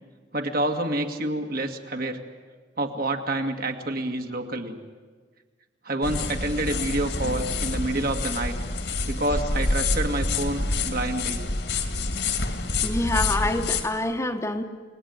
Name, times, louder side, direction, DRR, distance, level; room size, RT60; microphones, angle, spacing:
voice 1, 0.3-2.2 2.8-4.8 5.8-8.6 9.1-11.4, right 1 dB, 55° right, 4 dB, 2.3 m, -28 dB
sound 1, 6.0-13.9, left 3 dB, 65° left, 2.3 m, -27 dB
voice 2, 12.8-14.6, left 2 dB, 15° left, 6 dB, 1.3 m, -26 dB
30.0 x 19.5 x 9.6 m, 1.5 s
head